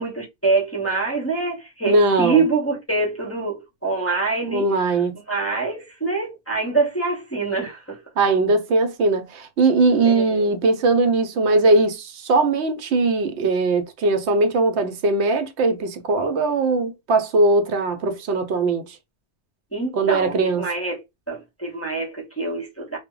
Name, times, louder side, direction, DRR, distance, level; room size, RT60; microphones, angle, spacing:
voice 1, 0.0-4.7 5.3-8.0 10.0-10.5 19.7-23.0, right 4 dB, 15° left, 0.6 m, -25 dB
voice 2, 1.9-2.4 4.5-5.2 8.2-19.0 19.9-20.7, right 3 dB, 75° right, 0.8 m, -20 dB
2.1 x 2.0 x 3.6 m
omnidirectional pair, 1.2 m